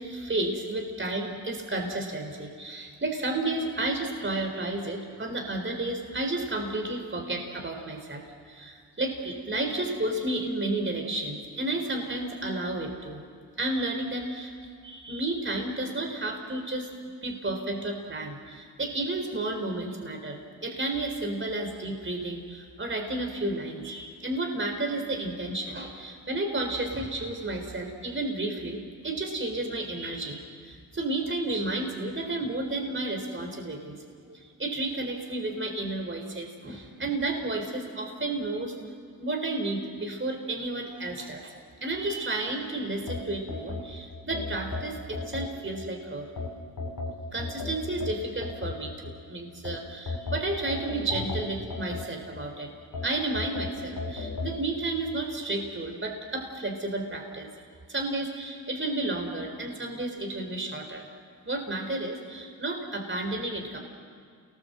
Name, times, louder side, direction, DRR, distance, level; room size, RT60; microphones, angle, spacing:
voice 1, 0.0-13.2 13.6-14.5 14.8-16.9 17.2-33.9 34.2-38.7 39.2-41.6 41.8-46.3 47.3-57.5 57.9-61.0 61.5-63.8, right 2 dB, 30° right, 3 dB, 4.3 m, -32 dB
sound 1, 43.1-45.9 46.4-49.1 49.6-52.4 52.9-54.6, left 3 dB, 50° left, 4.0 m, -35 dB
28.5 x 20.0 x 7.8 m, 2.1 s
supercardioid pair, 50°, 41 cm